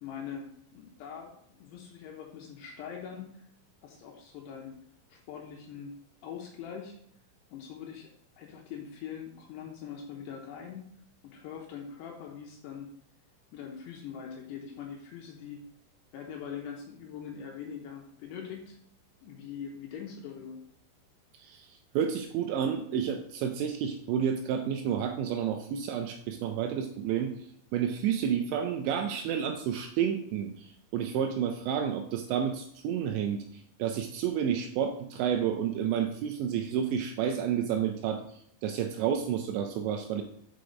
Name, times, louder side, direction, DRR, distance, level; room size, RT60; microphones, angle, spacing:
voice 1, 0.0-3.3 3.8-4.8 5.1-5.9 6.2-7.0 7.5-8.1 8.4-10.9 11.2-12.9 13.5-15.6 16.1-18.8 19.2-20.6, left 7 dB, 75° left, 1 dB, 2.6 m, -42 dB
voice 2, 21.4-27.3 27.7-33.4 33.8-38.2 38.6-40.2, right 8 dB, 80° right, 5 dB, 2.6 m, -30 dB
6.4 x 5.8 x 5.1 m, 0.70 s
omnidirectional pair, 5.6 m